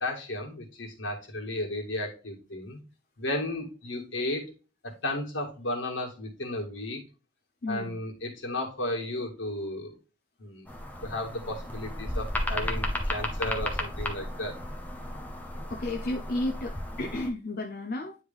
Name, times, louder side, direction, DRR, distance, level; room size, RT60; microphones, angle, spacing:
voice 1, 0.0-2.8 3.2-4.5 4.8-7.0 7.7-10.0 10.4-10.7 11.0-14.6, left 1 dB, 80° left, 1.8 m, -34 dB
voice 2, 7.6-8.0 15.7-18.2, left 2 dB, 50° left, 0.5 m, -32 dB
sound 1, 10.7-17.3, left 1 dB, 10° left, 0.8 m, -34 dB
9.5 x 3.3 x 3.5 m
head